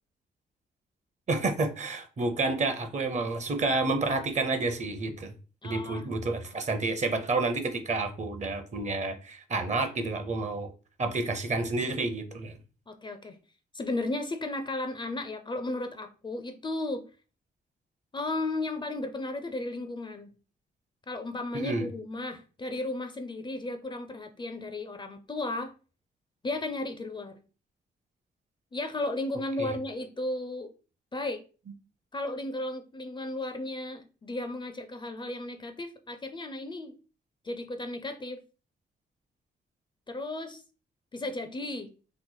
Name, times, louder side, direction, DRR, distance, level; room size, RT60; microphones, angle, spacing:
voice 1, 1.3-5.3 5.6-10.7 11.0-12.6 21.5-21.9 29.6-29.8, right 3 dB, 40° right, 0.6 m, -29 dB
voice 2, 5.6-6.1 12.9-13.4 13.7-17.0 18.1-20.3 21.1-25.7 26.4-27.4 28.7-30.7 31.1-31.4 32.1-37.0 37.4-38.4 40.1-40.6 41.1-41.9, left 2 dB, 25° left, 0.4 m, -34 dB
3.0 x 2.2 x 3.8 m
cardioid pair, 80°, 18 cm